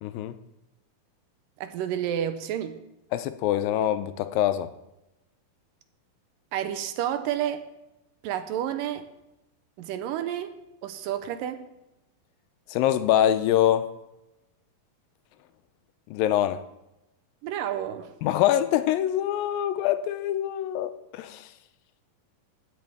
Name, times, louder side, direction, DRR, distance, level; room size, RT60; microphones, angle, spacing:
voice 1, 0.0-0.4 3.1-4.7 12.7-13.9 16.1-16.6 18.2-21.5, left 11 dB, 80° left, 11 dB, 2.3 m, -24 dB
voice 2, 1.6-2.8 6.5-7.6 8.2-9.1 9.8-10.5 10.8-11.7 17.4-18.2, right 10 dB, 80° right, 10 dB, 2.2 m, -30 dB
15.5 x 9.0 x 3.5 m, 0.92 s
omnidirectional pair, 4.2 m